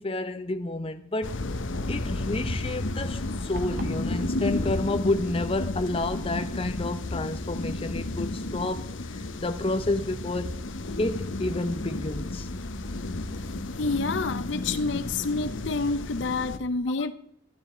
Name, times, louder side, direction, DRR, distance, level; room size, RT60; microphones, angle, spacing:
voice 1, 0.0-1.4 1.9-10.6 11.0-12.5, left 2 dB, 30° left, 0.8 m, -30 dB
sound 1, 1.2-16.6, left 2 dB, 85° left, 0.9 m, -32 dB
sound 2, 3.6-4.0, right 1 dB, 50° right, 1.3 m, -37 dB
voice 2, 13.8-17.1, left 3 dB, 65° left, 0.6 m, -28 dB
12.5 x 11.5 x 4.4 m
head